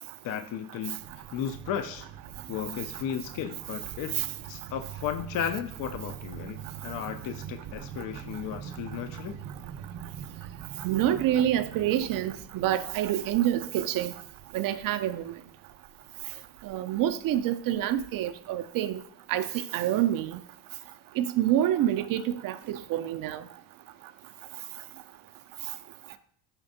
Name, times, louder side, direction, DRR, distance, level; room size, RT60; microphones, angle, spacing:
voice 1, 0.2-1.0 1.3-2.1 2.5-4.1 4.4-9.4, left 9 dB, 45° left, 0.5 m, -34 dB
sound 1, 1.0-18.4, right 9 dB, 60° right, 0.9 m, -44 dB
voice 2, 10.8-14.1 14.5-15.3 16.6-19.0 19.3-20.4 21.2-23.4, right 12 dB, 45° right, 0.4 m, -27 dB
5.9 x 3.3 x 2.6 m
hypercardioid pair, 75°, 49 cm